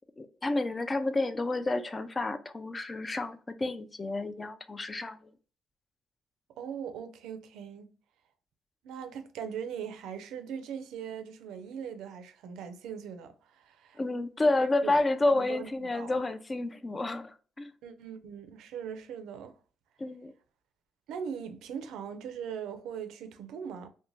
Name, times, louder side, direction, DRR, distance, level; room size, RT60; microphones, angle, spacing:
voice 1, 0.2-5.2 14.0-17.7 20.0-20.3, left 2 dB, 25° left, 0.3 m, -30 dB
voice 2, 6.6-7.9 8.8-14.0 14.4-15.0 15.3-16.2 17.8-19.6 21.1-23.9, right 7 dB, 85° right, 0.4 m, -40 dB
2.5 x 2.1 x 3.0 m
cardioid pair, 90°, 0 cm